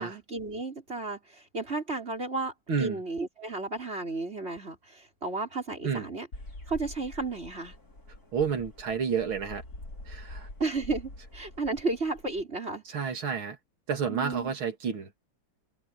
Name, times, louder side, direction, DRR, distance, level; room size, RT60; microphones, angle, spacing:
voice 1, 0.0-2.5 2.8-6.3 6.7-7.7 10.6-12.8 14.1-14.5, right 3 dB, 25° right, 5.6 m, -33 dB
voice 2, 2.7-3.0 5.8-6.1 8.3-9.6 10.1-10.5 12.9-13.6 13.9-15.1, right 6 dB, 65° right, 3.4 m, -30 dB
sound 1, 6.3-12.4, left 1 dB, 40° left, 6.1 m, -45 dB
omnidirectional pair, 2.4 m